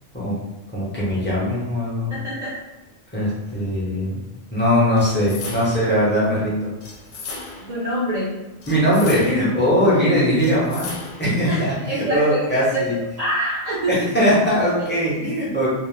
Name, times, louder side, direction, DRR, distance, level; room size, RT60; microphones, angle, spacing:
voice 1, 0.7-2.1 3.1-4.2 4.5-6.7 8.7-13.0 13.9-15.7, equal, 10° left, -8 dB, 0.5 m, -20 dB
voice 2, 2.1-2.5 7.6-8.4 11.5-14.1 14.8-14.9, right 1 dB, 50° right, -8 dB, 0.4 m, -26 dB
sound 1, 5.0-5.9 6.8-7.8 8.6-9.6 10.4-11.4, left 3 dB, 75° left, 0.9 m, -36 dB
2.4 x 2.0 x 3.0 m, 1.0 s
omnidirectional pair, 1.4 m